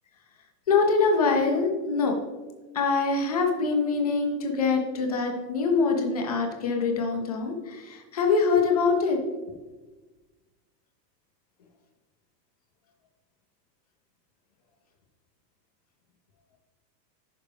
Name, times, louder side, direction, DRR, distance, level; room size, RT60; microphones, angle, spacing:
voice 1, 0.7-2.1 2.7-9.2, left 4 dB, 25° left, 2 dB, 0.4 m, -24 dB
11.0 x 4.9 x 3.5 m, 1.3 s
supercardioid pair, 175°, 50 cm